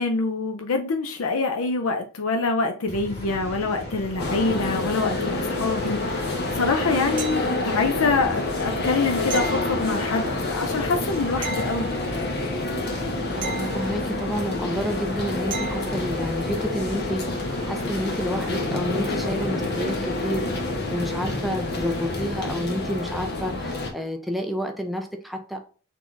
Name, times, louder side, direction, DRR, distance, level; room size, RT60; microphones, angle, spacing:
voice 1, 0.0-11.9, left 3 dB, 80° left, 0.6 m, -25 dB
sound 1, 2.9-22.5, equal, 30° left, 1.7 m, -38 dB
sound 2, 4.2-23.9, left 2 dB, 50° left, 1.0 m, -28 dB
sound 3, 7.2-7.9 9.3-10.4 11.4-12.4 13.4-14.4 15.5-16.1 18.9-19.0, right 4 dB, 40° right, 0.8 m, -35 dB
voice 2, 13.3-17.2 17.7-20.5 20.9-25.6, equal, ahead, 0.5 m, -29 dB
3.9 x 3.7 x 3.2 m
head